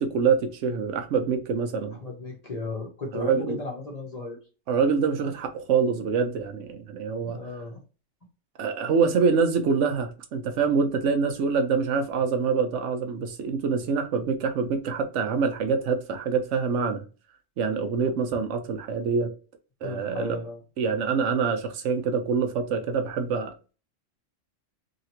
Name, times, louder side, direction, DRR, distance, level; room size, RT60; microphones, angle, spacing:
voice 1, 0.0-2.0 3.1-3.6 4.7-7.4 8.6-17.0 17.6-19.3 19.8-20.4 20.8-23.5, right 5 dB, 75° right, 0.9 m, -25 dB
voice 2, 2.0-4.4 7.2-7.8 19.8-20.6, left 2 dB, 35° left, 0.8 m, -35 dB
2.9 x 2.8 x 2.8 m
omnidirectional pair, 1.3 m